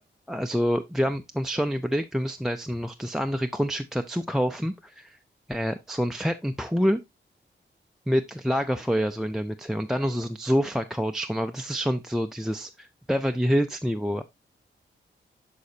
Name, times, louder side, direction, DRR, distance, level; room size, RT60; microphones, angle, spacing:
voice 1, 0.3-5.1 5.5-7.0 8.1-14.2, equal, ahead, 0.4 m, -27 dB
11.5 x 4.2 x 2.7 m
wide cardioid pair, 125°, 20 cm